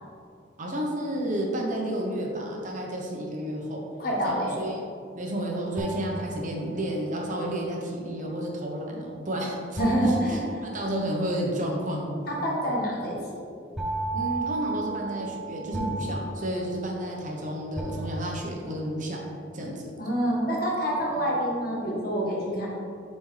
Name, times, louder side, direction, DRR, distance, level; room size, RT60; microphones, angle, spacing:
voice 1, 0.6-3.8 4.2-4.8 5.1-12.2 14.1-19.3 19.5-19.9 21.1-21.3, right 1 dB, 40° right, -1 dB, 0.9 m, -31 dB
voice 2, 4.0-4.6 9.8-10.4 12.3-13.2 20.0-22.7, equal, 50° left, -4 dB, 1.4 m, -26 dB
sound 1, 5.8-7.0 9.8-11.4 13.8-17.3 17.8-18.7, right 2 dB, 5° right, 0.5 m, -34 dB
7.3 x 4.3 x 3.2 m, 2.4 s
head